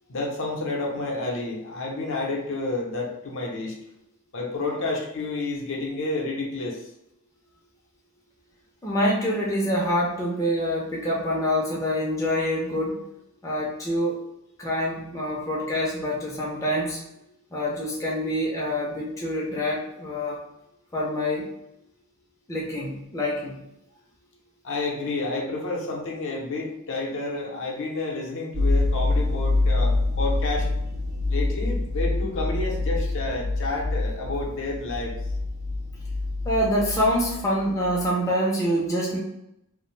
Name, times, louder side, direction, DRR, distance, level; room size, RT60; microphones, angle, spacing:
voice 1, 0.1-3.7 4.3-6.9 24.6-30.7 31.3-35.2, left 2 dB, 60° left, -1 dB, 0.6 m, -30 dB
voice 2, 8.8-13.0 13.4-14.2 14.6-17.0 17.5-20.4 20.9-21.5 22.5-23.6 36.4-39.2, equal, 15° left, -4 dB, 0.4 m, -26 dB
sound 1, 28.5-37.6 37.8-38.0, left 2 dB, 75° right, 0.6 m, -26 dB
2.7 x 2.0 x 3.1 m, 0.82 s
head